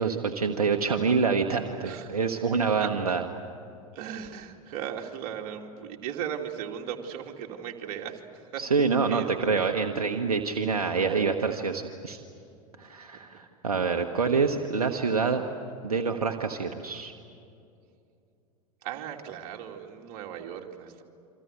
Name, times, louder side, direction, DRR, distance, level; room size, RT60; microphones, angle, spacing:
voice 1, 0.0-3.2 8.6-12.2 12.8-15.4 15.8-17.1, right 5 dB, 75° right, 4 dB, 1.4 m, -26 dB
voice 2, 1.8-2.2 2.8-3.1 3.9-9.7 18.8-21.0, right 9 dB, 45° right, 2 dB, 2.7 m, -37 dB
28.0 x 25.5 x 8.2 m, 2.6 s
figure-of-eight pair, 85°, 19 cm